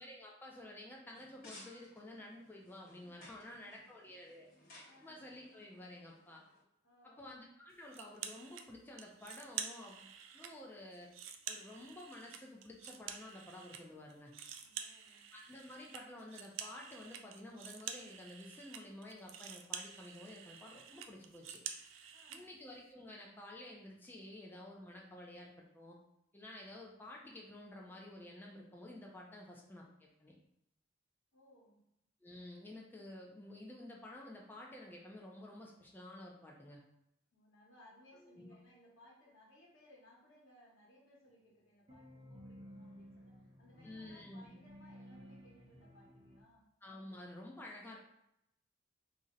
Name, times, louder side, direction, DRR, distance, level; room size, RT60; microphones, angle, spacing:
voice 1, 0.0-6.4 7.0-10.1 10.3-11.1 11.5-14.3 15.3-21.6 22.3-26.0 26.3-30.3 32.2-36.8 38.2-38.5 43.8-44.5 46.8-48.0, left 1 dB, 10° left, -2 dB, 0.3 m, -51 dB
sound 1, 1.1-6.6, left 1 dB, 45° left, 0.9 m, -60 dB
voice 2, 3.3-3.9 4.3-5.2 6.8-7.3 14.6-15.3 22.1-22.5 31.3-31.8 37.3-46.7, left 1 dB, 85° left, -4 dB, 1.0 m, -64 dB
sound 2, 7.9-8.6 9.0-10.5 10.9-13.8 14.1-22.4, right 8 dB, 70° right, 0.3 m, -48 dB
sound 3, 41.9-46.4, equal, 30° right, 0.8 m, -56 dB
2.6 x 2.0 x 3.7 m, 0.81 s
head